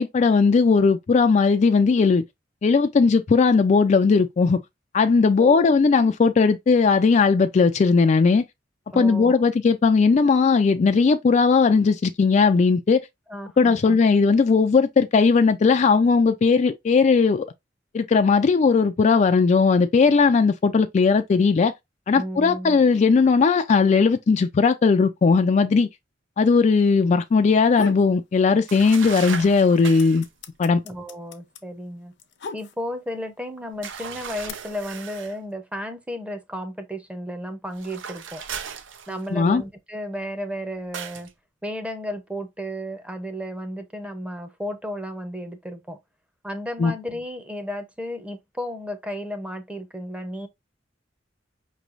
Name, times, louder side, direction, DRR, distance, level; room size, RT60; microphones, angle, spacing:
voice 1, 0.0-2.2 2.6-4.6 4.9-8.4 9.0-13.0 13.6-17.5 17.9-21.7 22.1-25.9 26.4-30.2 30.6-30.8 39.3-39.6 46.8-46.9, left 4 dB, 40° left, 0.3 m, -18 dB
voice 2, 5.4-5.7 8.9-9.5 13.3-14.0 22.1-22.8 30.8-32.1 32.5-38.4 39.1-41.3 41.6-46.0 46.4-50.5, equal, 5° right, 0.7 m, -33 dB
sound 1, 27.5-28.1 28.5-29.2 29.5-33.1 33.9-34.5, left 4 dB, 65° left, 0.7 m, -36 dB
sound 2, 28.7-30.3 33.8-35.4 37.7-39.5 40.9-41.3, right 7 dB, 90° right, 0.6 m, -36 dB
5.2 x 3.1 x 2.5 m
head